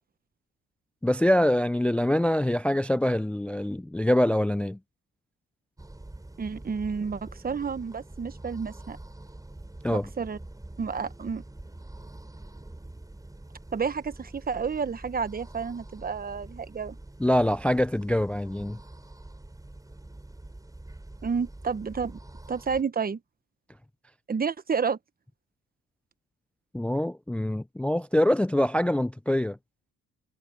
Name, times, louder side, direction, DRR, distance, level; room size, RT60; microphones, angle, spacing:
voice 1, 1.0-4.8 9.8-10.1 17.2-18.8 26.7-29.6, left 1 dB, 5° left, 0.4 m, -24 dB
sound 1, 5.8-22.8, right 2 dB, 10° right, 5.4 m, -45 dB
voice 2, 6.4-9.0 9.9-10.4 10.8-11.4 13.7-17.0 21.2-22.2 22.5-23.2 24.3-25.0, right 5 dB, 30° right, 1.1 m, -30 dB
cardioid pair, 90°, 30 cm